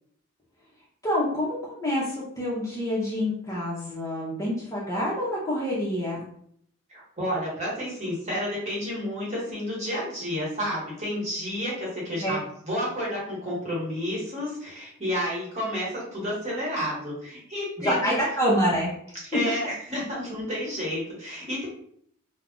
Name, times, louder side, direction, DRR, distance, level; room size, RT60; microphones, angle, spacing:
voice 1, 1.0-6.2 12.2-12.4 17.8-18.9 19.3-19.5, equal, 15° left, -7 dB, 0.5 m, -27 dB
voice 2, 6.9-12.4 12.7-18.2 19.3-21.7, equal, 30° right, -7 dB, 1.1 m, -30 dB
2.3 x 2.0 x 3.6 m, 0.66 s
head